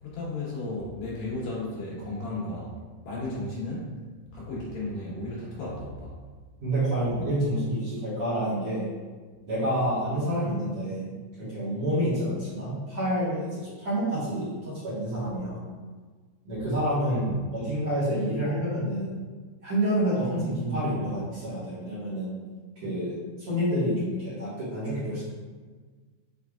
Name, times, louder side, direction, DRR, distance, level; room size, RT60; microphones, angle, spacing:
voice 1, 0.0-2.7 3.0-3.9 4.3-6.2 17.1-17.2 20.2-21.1, left 2 dB, 85° left, -6 dB, 3.0 m, -34 dB
voice 2, 6.6-8.9 9.5-11.0 11.4-15.6 16.5-19.1 19.6-22.3 22.8-25.2, right 1 dB, 50° right, -11 dB, 2.0 m, -28 dB
6.5 x 3.4 x 2.4 m, 1.4 s
omnidirectional pair, 3.9 m